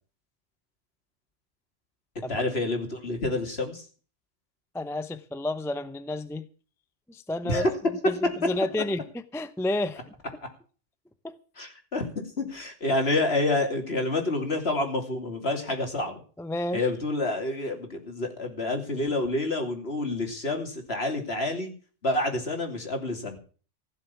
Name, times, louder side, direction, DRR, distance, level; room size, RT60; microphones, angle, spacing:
voice 1, 2.1-3.8 7.4-7.7 11.6-12.1 12.4-16.2 16.7-21.7 22.0-23.4, left 2 dB, 60° left, 3.2 m, -28 dB
voice 2, 4.7-6.5 7.1-9.0 9.3-10.0 11.2-11.3 16.4-16.9, left 1 dB, 5° left, 0.6 m, -31 dB
16.0 x 7.1 x 8.5 m
omnidirectional pair, 1.2 m